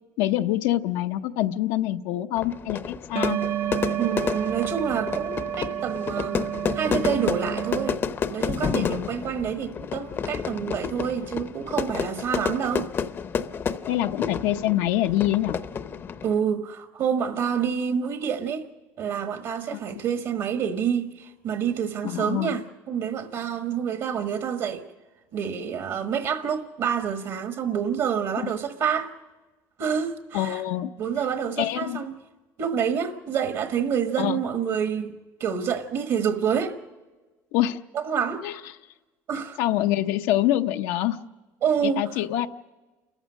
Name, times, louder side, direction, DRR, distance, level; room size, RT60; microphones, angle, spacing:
voice 1, 0.2-3.4 8.7-9.1 13.9-15.6 19.7-20.0 22.0-22.5 28.4-28.5 30.3-30.9 31.6-32.0 34.2-34.4 37.5-37.8 38.4-38.6 39.6-41.2 41.8-42.5, left 13 dB, 85° left, 0.7 m, -25 dB
Fire / Fireworks, 2.4-16.4, left 6 dB, 30° left, 0.6 m, -30 dB
sound 1, 3.2-8.0, right 11 dB, 30° right, 0.6 m, -30 dB
voice 2, 4.0-8.0 8.3-12.9 16.2-18.7 19.0-24.9 25.3-29.1 29.8-30.6 31.0-32.2 32.6-35.1 35.4-36.8 37.9-38.5 39.3-39.6 41.6-42.1, right 7 dB, 55° right, 1.3 m, -27 dB
29.5 x 14.0 x 6.4 m
cardioid pair, 140°, 7 cm